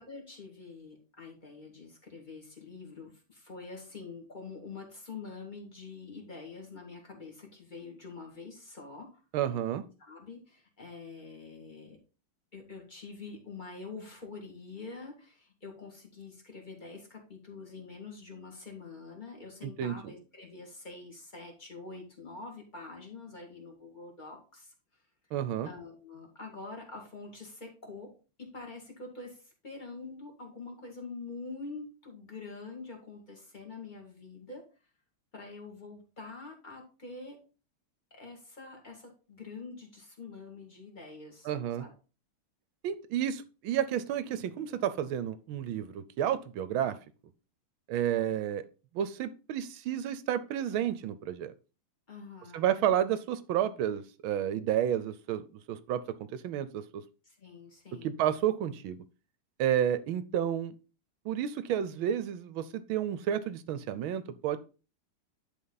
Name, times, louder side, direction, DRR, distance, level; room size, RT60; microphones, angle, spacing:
voice 1, 0.0-9.2 10.0-12.0 12.5-24.7 25.6-28.1 28.4-34.6 35.3-37.4 38.1-41.5 41.8-41.9 52.1-52.7 57.2-58.2, left 4 dB, 20° left, 1 dB, 2.2 m, -45 dB
voice 2, 9.3-9.8 19.6-20.1 25.3-25.7 41.4-41.9 42.8-47.0 47.9-48.6 48.9-51.5 52.5-57.0 58.0-59.0 59.6-60.7 61.2-64.6, right 10 dB, 75° right, 14 dB, 1.4 m, -31 dB
11.0 x 4.2 x 3.9 m, 0.34 s
omnidirectional pair, 2.4 m